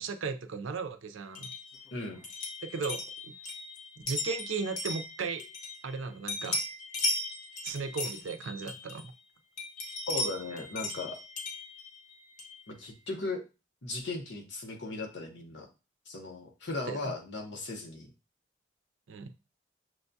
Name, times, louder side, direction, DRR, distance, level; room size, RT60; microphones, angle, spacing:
voice 1, 0.0-1.5 2.6-3.3 4.1-5.5 5.8-6.6 7.6-9.1 16.9-17.1 19.1-19.3, right 4 dB, 90° right, 8 dB, 0.5 m, -36 dB
sound 1, 1.3-6.0 6.3-9.2 9.6-12.6, left 2 dB, 40° left, 0.7 m, -37 dB
voice 2, 1.9-2.2 10.1-11.2 12.7-13.4 13.8-15.7 16.1-18.1, left 2 dB, 70° left, 2 dB, 0.9 m, -37 dB
6.2 x 2.2 x 2.6 m, 0.29 s
head